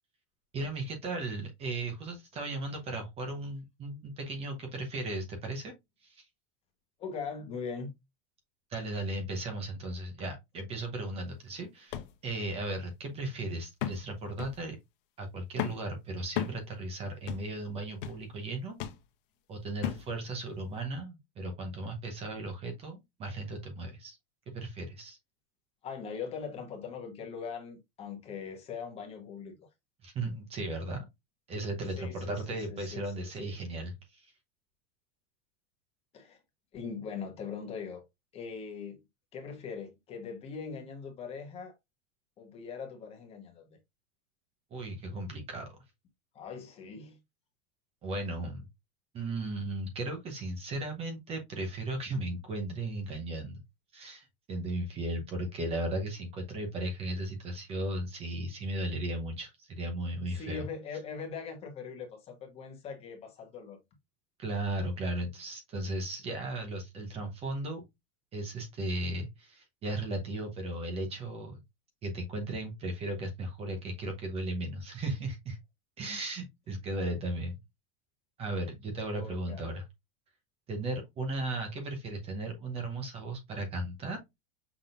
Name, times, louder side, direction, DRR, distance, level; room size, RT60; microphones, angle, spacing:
voice 1, 0.5-5.7 6.0-6.2 8.7-14.8 15.2-18.8 19.5-24.2 24.5-25.2 30.0-31.0 31.5-34.3 44.7-45.7 48.0-48.7 49.1-53.6 53.9-60.6 64.4-67.8 68.3-71.6 72.0-75.6 76.0-77.6 78.4-79.8 80.7-84.2, right 2 dB, 20° right, 0.8 m, -36 dB
voice 2, 7.0-7.9 25.8-29.7 31.9-33.6 36.1-36.4 36.7-38.0 38.3-39.0 39.3-41.7 42.4-43.8 46.3-47.2 60.3-63.8 79.1-79.7, left 6 dB, 20° left, 1.1 m, -41 dB
sound 1, 11.9-12.1 12.6-12.7 13.8-14.1 14.4-14.6 15.6-15.9 16.4-16.6 17.3-17.5 18.0-18.2 18.8-19.0 19.8-20.1 20.8-20.9, left 11 dB, 60° left, 0.9 m, -35 dB
5.9 x 3.6 x 2.5 m
supercardioid pair, 180°, 30 cm